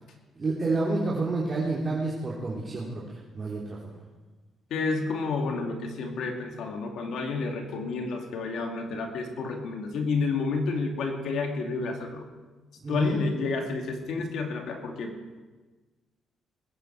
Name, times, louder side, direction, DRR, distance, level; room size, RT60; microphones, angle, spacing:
voice 1, 0.3-3.8 12.8-13.2, right 3 dB, 35° right, -6 dB, 3.0 m, -29 dB
voice 2, 4.7-12.3 12.9-15.4, left 4 dB, 75° left, 3 dB, 2.3 m, -30 dB
20.5 x 9.9 x 4.6 m, 1.2 s
cardioid pair, 90°, 0 cm